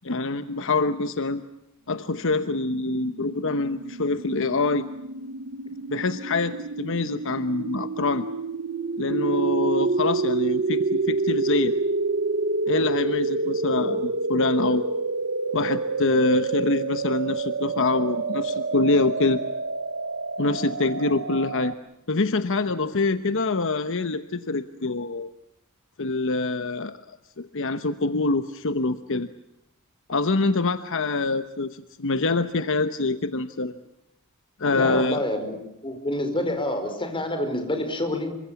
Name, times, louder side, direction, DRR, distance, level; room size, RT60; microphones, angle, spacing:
voice 1, 0.0-1.4 1.9-4.8 5.9-8.3 9.0-11.8 12.7-14.9 15.5-19.4 20.4-21.7 22.1-25.3 26.0-27.0 27.4-29.3 30.1-33.8 34.6-35.2, left 3 dB, 60° left, 11 dB, 1.0 m, -25 dB
sound 1, 3.1-21.7, right 3 dB, 60° right, 1.1 m, -28 dB
voice 2, 34.7-35.6 35.8-38.4, left 1 dB, 25° left, 6 dB, 5.0 m, -28 dB
27.5 x 24.5 x 7.1 m, 0.85 s
head